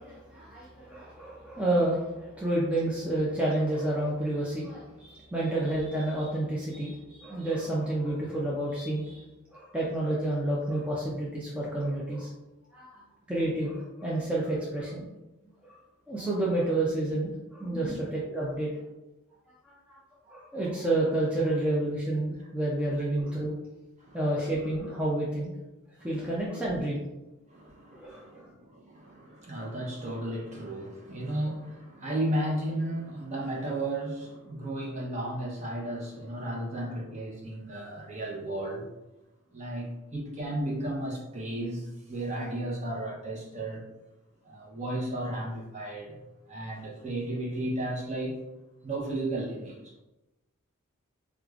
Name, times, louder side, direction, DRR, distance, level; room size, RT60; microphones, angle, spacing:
voice 1, 0.0-9.2 9.5-12.3 12.7-13.0 13.3-15.1 15.6-15.8 16.1-18.7 19.6-20.0 20.3-23.5 24.1-25.5 26.0-27.1 27.9-28.5, right 1 dB, 5° right, -6 dB, 0.4 m, -30 dB
voice 2, 27.5-38.8 39.5-43.8 44.4-46.2 46.5-48.4 48.8-50.0, right 1 dB, 35° right, -3 dB, 0.8 m, -34 dB
4.6 x 2.4 x 2.4 m, 0.99 s
head